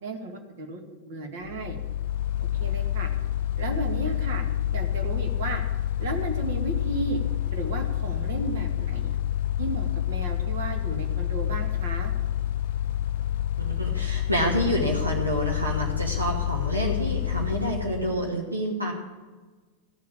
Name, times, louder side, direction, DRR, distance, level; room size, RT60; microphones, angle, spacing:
voice 1, 0.0-0.8 1.1-1.8 2.6-3.1 3.6-4.4 4.7-5.6 6.0-7.2 7.5-9.2 9.6-12.1, right 3 dB, 55° right, 4 dB, 2.0 m, -34 dB
Mechanical fan, 1.5-18.3, left 11 dB, 55° left, 0.5 m, -28 dB
voice 2, 13.6-18.9, equal, 80° right, -1 dB, 2.1 m, -28 dB
14.5 x 6.6 x 8.6 m, 1.3 s
figure-of-eight pair, 90°, 0 cm